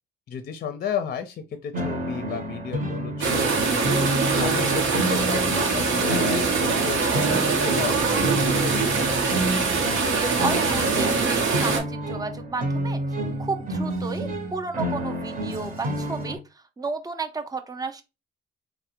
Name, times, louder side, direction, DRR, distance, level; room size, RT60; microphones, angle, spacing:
voice 1, 0.3-4.0 4.4-9.2, left 7 dB, 50° left, 8 dB, 0.5 m, -33 dB
sound 1, 1.7-16.4, right 1 dB, 45° right, 0.8 m, -30 dB
sound 2, 3.2-11.8, right 4 dB, 80° right, 0.8 m, -23 dB
voice 2, 10.2-13.0 13.4-18.0, right 4 dB, 20° right, 7 dB, 0.5 m, -33 dB
3.2 x 2.1 x 2.8 m, 0.26 s
cardioid pair, 90°, 20 cm